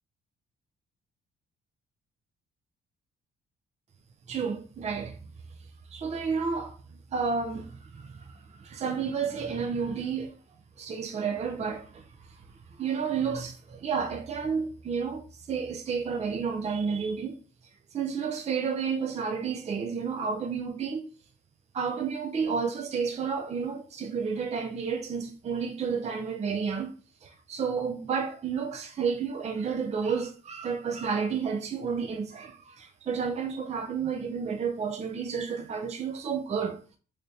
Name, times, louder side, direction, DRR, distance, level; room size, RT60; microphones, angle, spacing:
voice 1, 4.3-5.2 5.9-6.7 7.1-10.4 10.8-12.0 12.8-17.4 17.9-21.1 21.7-26.9 27.2-37.0, right 6 dB, 35° right, 0.5 m, -31 dB
3.9 x 3.3 x 2.7 m
cardioid pair, 90°, 20 cm